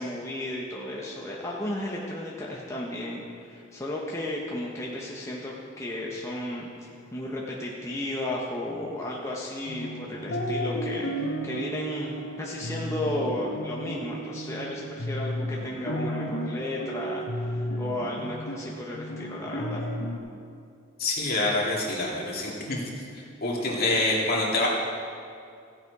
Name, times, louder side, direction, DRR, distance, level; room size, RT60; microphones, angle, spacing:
voice 1, 0.0-6.7 7.1-19.9, left 1 dB, 15° left, -4 dB, 1.0 m, -34 dB
sound 1, 9.6-20.2, equal, 85° left, 1.2 m, -33 dB
voice 2, 21.0-22.8 23.4-24.7, left 2 dB, 50° left, -4 dB, 2.4 m, -26 dB
15.0 x 7.8 x 4.8 m, 2.4 s
head